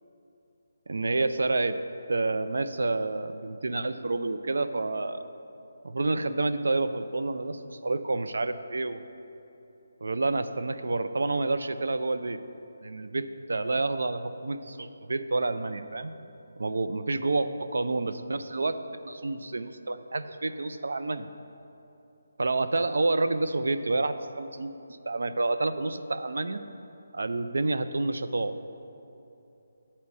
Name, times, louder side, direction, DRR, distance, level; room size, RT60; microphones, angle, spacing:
voice 1, 0.9-1.8 2.1-5.2 5.8-9.0 10.0-12.4 12.8-16.1 16.6-21.3 22.4-26.6 27.1-28.6, right 2 dB, 75° right, 10 dB, 0.5 m, -29 dB
9.7 x 4.3 x 7.3 m, 2.9 s
hypercardioid pair, 175°, 0 cm